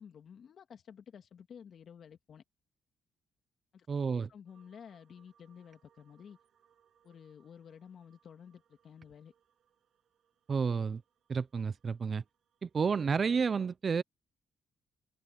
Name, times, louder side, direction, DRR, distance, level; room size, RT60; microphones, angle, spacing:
voice 1, 0.0-2.4 3.7-3.9 4.3-6.4 7.0-9.3, left 7 dB, 55° left, 2.6 m, -52 dB
voice 2, 3.9-4.3 10.5-11.0 11.3-12.2 12.6-14.0, right 5 dB, 40° right, 0.5 m, -30 dB
sound 1, 4.5-13.4, right 9 dB, 60° right, 7.5 m, -72 dB
cardioid pair, 90°, 0 cm